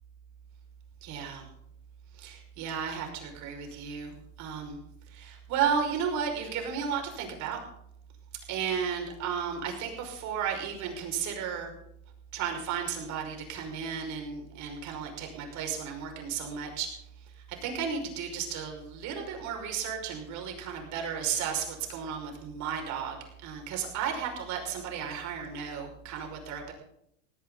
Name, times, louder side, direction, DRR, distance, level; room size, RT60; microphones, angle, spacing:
voice 1, 1.0-1.4 2.2-4.1 4.4-4.8 5.1-7.6 8.5-11.7 12.3-16.9 17.6-26.7, right 7 dB, 50° right, 2 dB, 5.7 m, -33 dB
18.0 x 17.0 x 4.0 m, 0.75 s
hypercardioid pair, 110°, 37 cm